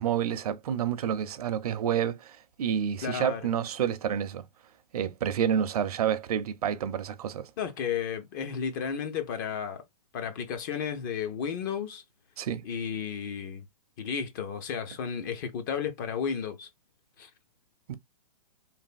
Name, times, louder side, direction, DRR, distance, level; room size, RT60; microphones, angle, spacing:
voice 1, 0.0-4.4 4.9-7.5 12.4-12.6 17.9-18.0, right 9 dB, 65° right, 0.6 m, -29 dB
voice 2, 3.0-3.5 7.6-9.8 10.1-12.0 12.6-13.6 14.0-16.7 17.2-17.3, left 7 dB, 30° left, 0.5 m, -33 dB
3.3 x 2.5 x 2.4 m
hypercardioid pair, 150°, 21 cm